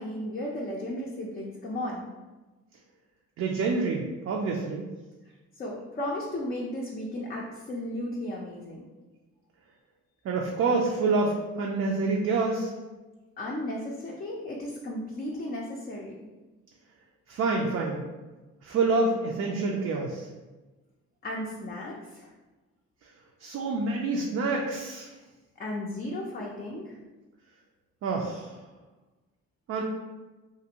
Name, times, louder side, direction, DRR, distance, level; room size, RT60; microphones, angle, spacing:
voice 1, 0.0-2.0 5.6-8.8 13.4-16.1 21.2-22.3 25.6-26.9, left 1 dB, 30° left, -2 dB, 0.4 m, -35 dB
voice 2, 3.4-4.8 10.2-12.7 17.3-18.0 18.6-20.3 23.4-25.1 28.0-28.6 29.7-29.8, right 3 dB, 55° right, -1 dB, 0.4 m, -27 dB
2.6 x 2.5 x 2.8 m, 1.2 s
cardioid pair, 90°, 30 cm